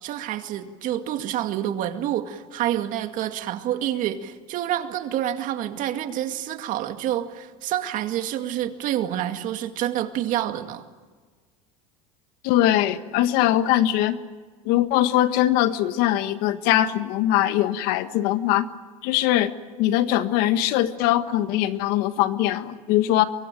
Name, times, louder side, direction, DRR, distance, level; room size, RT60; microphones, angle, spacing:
voice 1, 0.0-10.8, right 11 dB, 55° right, 7 dB, 2.2 m, -28 dB
voice 2, 12.4-14.2 14.6-18.7 19.0-19.5 19.8-23.3, left 13 dB, 65° left, 11 dB, 1.5 m, -21 dB
24.0 x 24.0 x 9.1 m, 1.4 s
supercardioid pair, 115°, 17 cm